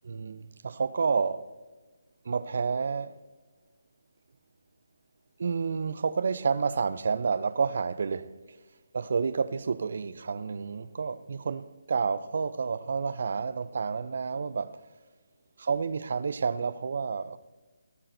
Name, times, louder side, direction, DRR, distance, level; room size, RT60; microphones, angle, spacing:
voice 1, 0.0-1.5 2.3-3.2 5.4-8.3 8.9-14.8 15.6-17.4, right 5 dB, 60° right, 0.6 m, -30 dB
16.5 x 14.0 x 2.7 m
figure-of-eight pair, 155°, 0 cm